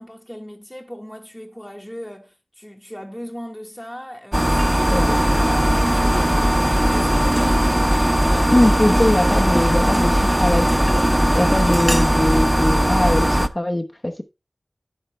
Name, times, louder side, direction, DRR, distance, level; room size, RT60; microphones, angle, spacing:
voice 1, 0.0-6.6 6.9-8.0, equal, 5° left, 1.4 m, -37 dB
sound 1, 4.3-13.5, equal, 15° right, 0.8 m, -18 dB
voice 2, 8.5-10.7 11.3-14.2, left 1 dB, 30° left, 1.0 m, -21 dB
11.5 x 7.6 x 3.3 m
wide cardioid pair, 45°, 0 cm